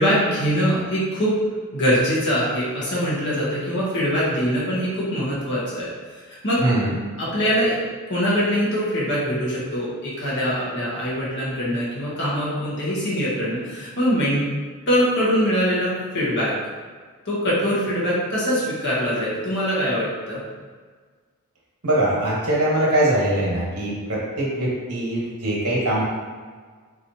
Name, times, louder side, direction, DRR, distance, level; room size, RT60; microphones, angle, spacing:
voice 1, 0.0-1.4 1.7-5.9 6.3-6.6 7.2-7.8 8.1-14.4 14.9-16.5 17.2-20.4, equal, 55° left, -7 dB, 1.1 m, -23 dB
voice 2, 6.6-6.9 21.8-26.0, right 1 dB, 70° right, -5 dB, 1.2 m, -22 dB
4.0 x 3.0 x 2.7 m, 1.5 s
head